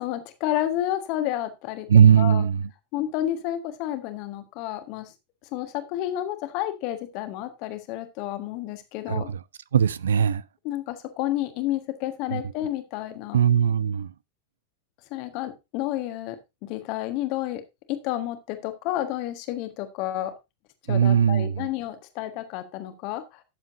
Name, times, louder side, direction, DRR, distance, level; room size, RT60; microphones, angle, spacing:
voice 1, 0.0-1.9 2.2-2.4 2.9-5.1 5.5-9.3 10.6-13.4 15.1-17.6 17.9-20.3 20.9-23.4, left 13 dB, 45° left, 1.5 m, -30 dB
voice 2, 1.9-2.7 9.1-9.4 9.7-10.4 12.3-12.4 13.3-14.1 20.9-21.7, right 8 dB, 65° right, 0.4 m, -19 dB
12.5 x 7.4 x 2.7 m
figure-of-eight pair, 90°, 0 cm